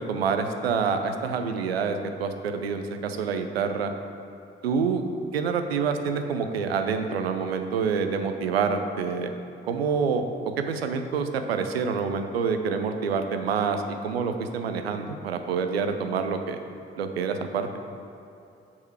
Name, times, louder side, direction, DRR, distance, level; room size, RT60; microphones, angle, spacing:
voice 1, 0.0-3.9 4.6-5.0 5.3-9.3 9.7-10.3 10.6-16.6 17.0-17.7, right 5 dB, 85° right, 7 dB, 0.5 m, -27 dB
7.1 x 6.6 x 4.6 m, 2.7 s
figure-of-eight pair, 40°, 30 cm